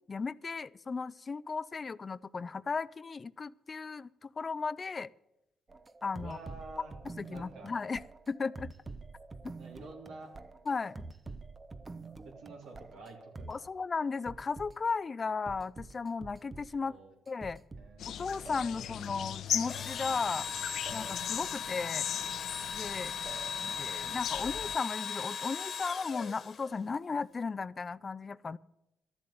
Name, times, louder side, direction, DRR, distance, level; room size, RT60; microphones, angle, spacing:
voice 1, 0.1-5.1 6.0-6.4 7.2-8.7 9.4-9.5 10.7-11.0 13.5-17.0 17.3-17.6 18.1-20.5 20.9-22.1 22.7-23.2 23.6-28.6, left 4 dB, 35° left, 18 dB, 0.4 m, -35 dB
sound 1, 5.7-13.7 14.3-14.7 15.5-16.9 17.3-18.1 18.5-19.3 20.9-21.7 23.3-24.1, right 3 dB, 30° right, 0.8 m, -47 dB
voice 2, 6.2-6.9 7.3-7.7 9.6-10.3 12.2-13.7 16.8-17.1 17.8-18.0 18.8-18.9, right 3 dB, 80° right, 2 dB, 3.5 m, -49 dB
sound 2, 18.0-24.7, left 10 dB, 75° left, 0.8 m, -39 dB
Engine / Drill, 19.6-26.9, left 6 dB, 50° left, 1.4 m, -38 dB
13.0 x 7.5 x 9.6 m, 0.88 s
cardioid pair, 90°, 0 cm